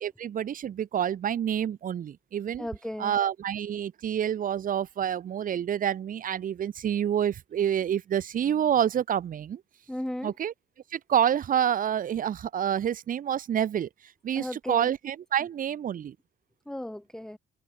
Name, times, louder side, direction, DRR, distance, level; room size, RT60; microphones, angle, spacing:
voice 1, 0.0-2.7 3.0-9.6 10.2-10.5 10.9-13.9 14.2-16.1, right 9 dB, 45° right, 0.5 m, -28 dB
voice 2, 2.6-3.2 9.9-10.4 14.3-14.9 16.7-17.4, left 1 dB, 5° left, 0.9 m, -35 dB
open air
cardioid pair, 90°, 20 cm